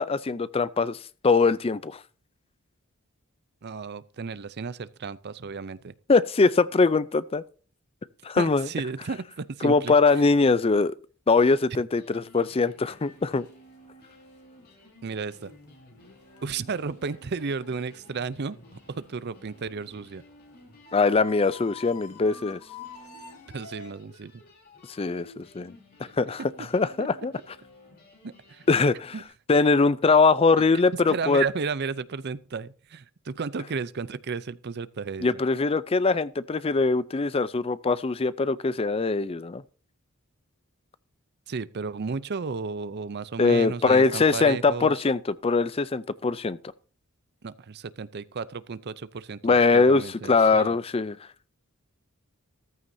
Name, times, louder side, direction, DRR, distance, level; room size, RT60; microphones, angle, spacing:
voice 1, 0.0-2.0 6.1-7.4 8.2-8.7 9.6-10.9 11.3-13.5 20.9-22.6 25.0-25.7 26.0-27.3 28.7-29.1 29.5-31.4 35.2-39.6 43.4-46.6 49.4-50.0 50.3-51.2, left 4 dB, 25° left, 0.4 m, -22 dB
voice 2, 3.6-5.9 8.4-9.9 15.0-15.5 16.4-18.6 18.9-20.2 23.5-24.4 28.2-28.7 29.1-29.2 31.1-35.4 41.5-44.9 47.4-50.8, right 5 dB, 50° right, 0.5 m, -33 dB
sound 1, 11.9-29.2, left 1 dB, 45° left, 3.2 m, -53 dB
sound 2, 12.9-23.9, left 6 dB, 80° left, 2.3 m, -50 dB
14.0 x 13.0 x 2.7 m
head